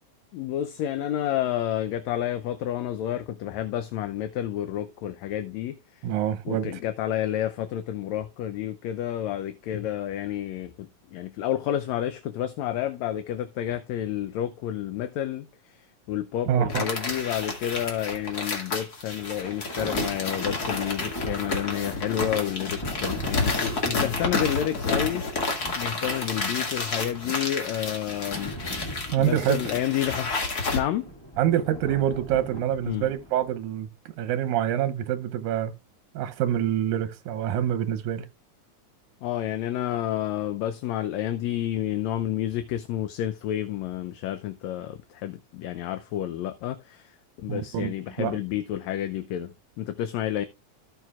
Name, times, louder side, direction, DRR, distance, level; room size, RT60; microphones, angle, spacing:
voice 1, 0.3-6.0 6.5-15.8 16.1-25.3 25.8-28.6 29.2-30.3 30.7-31.1 32.9-33.0 39.2-47.1 47.4-50.5, left 11 dB, 75° left, 1.8 m, -30 dB
voice 2, 6.0-6.7 16.5-16.8 29.1-29.7 31.4-33.9 34.2-35.7 36.1-38.3 47.5-48.4, right 10 dB, 85° right, 2.3 m, -26 dB
sound 1, 16.7-30.8, left 3 dB, 35° left, 2.2 m, -30 dB
sound 2, 19.2-33.5, equal, 10° left, 1.3 m, -40 dB
17.0 x 6.2 x 2.4 m
omnidirectional pair, 3.4 m